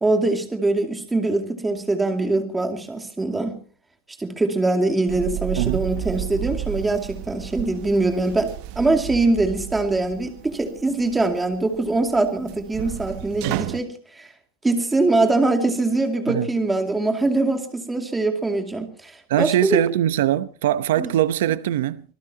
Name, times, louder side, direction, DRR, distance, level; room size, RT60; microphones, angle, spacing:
voice 1, 0.0-3.6 4.2-14.3 14.6-19.8 21.0-21.1, right 2 dB, 10° right, 2.4 m, -23 dB
sound 1, 5.1-13.8, right 14 dB, 45° right, 1.0 m, -33 dB
voice 2, 19.3-22.0, right 12 dB, 75° right, 0.8 m, -22 dB
25.5 x 19.0 x 2.9 m
supercardioid pair, 165°, 0 cm